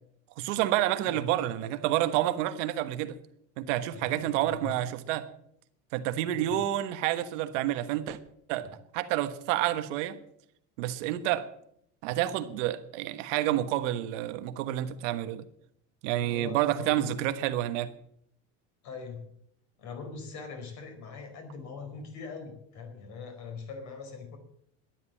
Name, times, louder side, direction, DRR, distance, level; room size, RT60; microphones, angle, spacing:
voice 1, 0.4-3.2 3.6-5.3 5.9-8.2 8.5-10.2 10.8-11.5 12.0-15.5 16.0-17.9, right 13 dB, 80° right, 1.4 m, -29 dB
voice 2, 3.9-4.7 6.3-6.6 8.6-8.7 16.2-17.1 18.8-19.2 19.8-24.4, left 4 dB, 50° left, 4.4 m, -42 dB
13.0 x 10.5 x 7.5 m
cardioid pair, 155°, 36 cm